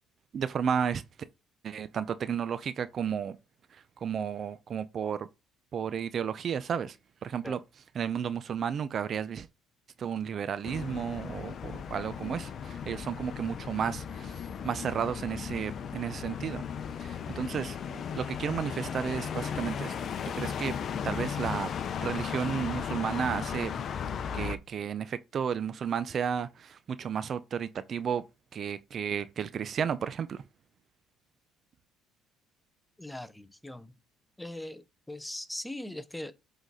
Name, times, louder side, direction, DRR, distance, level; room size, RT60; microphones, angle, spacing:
voice 1, 0.3-1.0 1.6-3.4 3.7-5.3 5.7-7.0 7.2-7.6 8.0-9.5 10.0-16.6 17.0-19.9 20.3-20.8 21.0-21.7 22.0-23.7 24.3-28.2 28.5-30.4, right 7 dB, 45° right, 0.5 m, -33 dB
sound 1, 10.6-24.6, left 7 dB, 50° left, 0.7 m, -36 dB
voice 2, 33.0-33.9 34.4-36.3, left 1 dB, 5° left, 0.7 m, -40 dB
8.0 x 4.0 x 4.1 m
cardioid pair, 100°, 0 cm